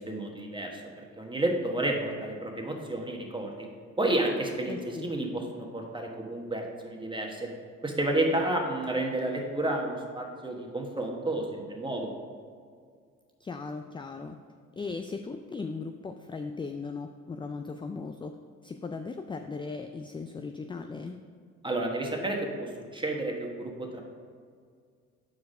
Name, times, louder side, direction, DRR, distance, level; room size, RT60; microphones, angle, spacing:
voice 1, 0.0-3.7 4.0-7.5 7.8-12.1 21.6-24.0, right 1 dB, 15° right, 1 dB, 1.4 m, -31 dB
voice 2, 4.7-5.1 13.4-14.4 14.8-18.3 18.6-21.2, left 4 dB, 15° left, 6 dB, 0.3 m, -38 dB
6.5 x 4.7 x 5.2 m, 2.1 s
supercardioid pair, 65°, 33 cm